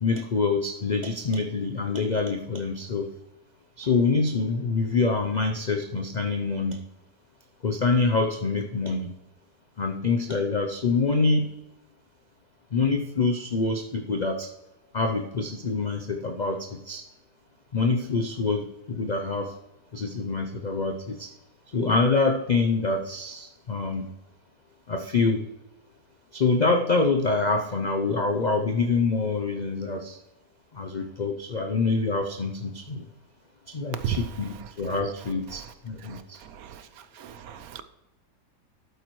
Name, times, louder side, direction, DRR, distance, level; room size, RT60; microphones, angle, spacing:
voice 1, 0.0-3.1 3.8-6.8 7.6-9.1 9.8-11.5 12.7-14.5 14.9-17.0 17.7-19.6 19.9-21.3 21.7-24.1 24.9-25.5 26.3-30.2 30.7-33.1 33.7-36.4, left 3 dB, 70° left, 0.4 m, -26 dB
voice 2, 37.2-37.8, right 10 dB, 70° right, 1.0 m, -34 dB
11.5 x 8.7 x 3.1 m
omnidirectional pair, 1.7 m